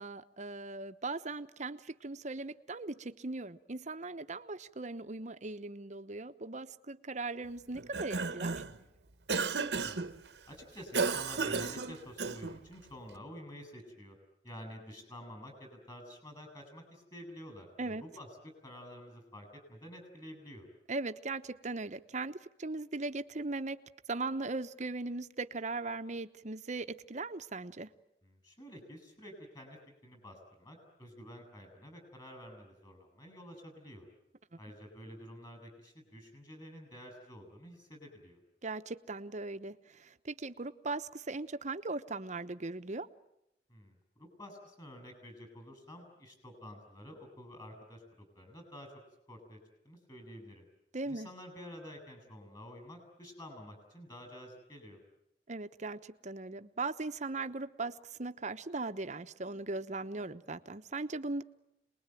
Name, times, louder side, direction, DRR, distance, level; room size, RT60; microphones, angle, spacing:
voice 1, 0.0-8.6 17.8-18.0 20.9-23.8 24.1-27.9 38.6-43.1 50.9-51.3 55.5-61.4, right 3 dB, 45° right, 10 dB, 1.0 m, -39 dB
Cough, 7.8-8.8 9.3-10.1 10.9-12.6, right 4 dB, 70° right, 1.2 m, -33 dB
voice 2, 9.8-10.1 10.5-14.2 14.4-18.3 18.6-20.7 28.2-34.1 34.6-38.4 43.7-48.9 49.3-49.6 49.8-50.7 51.0-55.0, equal, 25° left, 6 dB, 7.7 m, -50 dB
27.5 x 21.0 x 9.2 m, 0.83 s
head